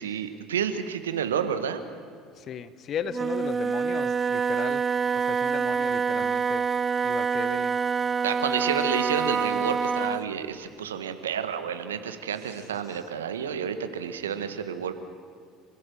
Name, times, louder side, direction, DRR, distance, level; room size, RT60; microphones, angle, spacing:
voice 1, 0.0-1.8 8.2-14.9, right 8 dB, 80° right, 9 dB, 1.4 m, -30 dB
voice 2, 2.4-4.8 5.1-6.6 7.0-7.8, left 8 dB, 45° left, 14 dB, 1.2 m, -36 dB
Wind instrument woodwind instrument, 3.1-10.3, right 5 dB, 30° right, 0.5 m, -26 dB
29.0 x 16.0 x 6.3 m, 2.3 s
figure-of-eight pair, 65°, 0 cm